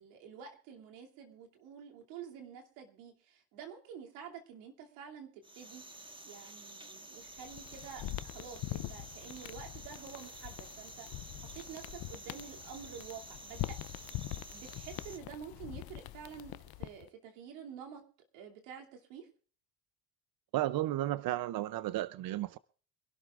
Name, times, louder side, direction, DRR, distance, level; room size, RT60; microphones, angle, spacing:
voice 1, 0.0-13.8 14.5-18.0 18.3-19.3, right 7 dB, 85° right, 2.8 m, -49 dB
sound 1, 5.4-15.2, right 2 dB, 10° right, 1.4 m, -51 dB
sound 2, 7.3-17.1, left 16 dB, 55° left, 0.7 m, -44 dB
voice 2, 20.5-22.6, right 15 dB, 55° right, 0.6 m, -33 dB
25.5 x 12.0 x 2.5 m
supercardioid pair, 75°, 44 cm